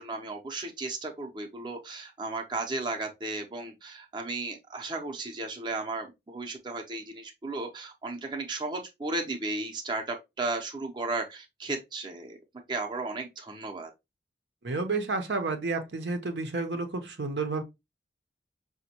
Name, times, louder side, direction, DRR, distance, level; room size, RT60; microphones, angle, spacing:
voice 1, 0.0-12.4 12.7-13.9, right 3 dB, 25° right, 0.6 m, -35 dB
voice 2, 14.6-17.6, right 3 dB, 80° right, 0.6 m, -30 dB
5.1 x 2.1 x 2.8 m
head